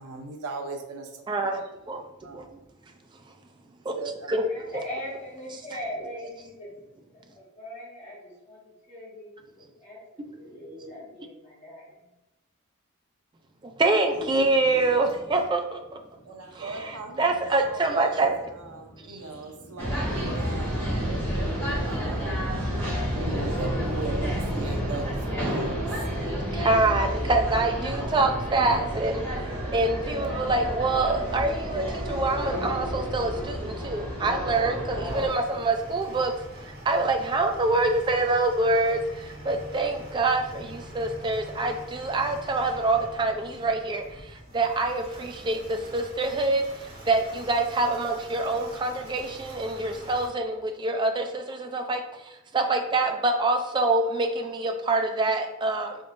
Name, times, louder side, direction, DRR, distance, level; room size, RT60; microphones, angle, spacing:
voice 1, 0.0-1.1 2.2-2.4 3.9-4.4 16.3-18.3 18.6-21.1 21.4-22.7 23.1-26.0, right 3 dB, 85° right, 4 dB, 0.6 m, -38 dB
voice 2, 1.3-2.0 2.3-2.4 3.9-4.0 4.3-4.7 13.6-15.8 16.5-18.4 19.1-19.2 26.5-36.3 36.8-56.0, right 2 dB, 20° right, 4 dB, 0.3 m, -26 dB
voice 3, 4.3-6.7 7.1-8.6 8.9-12.0, left 1 dB, 30° left, -6 dB, 1.4 m, -40 dB
sound 1, 14.0-26.8, equal, 70° left, 1.4 m, -47 dB
sound 2, 19.8-35.3, equal, 10° left, 1.4 m, -30 dB
sound 3, 35.0-50.3, right 1 dB, 60° right, 1.5 m, -44 dB
3.7 x 3.6 x 2.5 m, 0.94 s
head